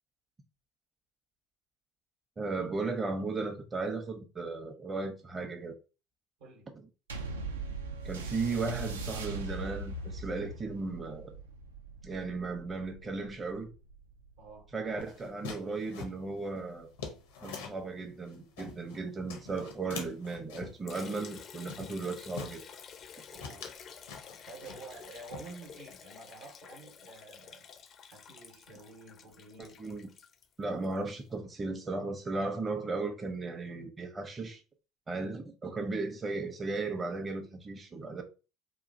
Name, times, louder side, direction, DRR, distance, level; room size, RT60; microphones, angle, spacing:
voice 1, 2.4-5.7 8.0-11.4 12.0-13.7 14.7-16.9 17.4-22.6 29.6-30.1 30.6-34.6 35.1-38.2, right 3 dB, 25° right, 0.6 m, -36 dB
sound 1, 7.1-15.9 16.6-16.7, right 3 dB, 90° right, 0.3 m, -41 dB
voice 2, 14.4-14.7 23.3-23.7 24.5-27.7 28.1-29.8, right 3 dB, 70° right, 0.9 m, -50 dB
sound 2, 15.0-17.9 18.3-19.0 19.3-20.8 21.3-21.4 21.7-22.6 23.0-23.2 23.4-25.1 25.3-25.9, left 5 dB, 80° left, 0.6 m, -44 dB
Liquid, 20.9-31.0, left 7 dB, 45° left, 0.4 m, -50 dB
3.0 x 2.4 x 2.6 m
hypercardioid pair, 70°, 0 cm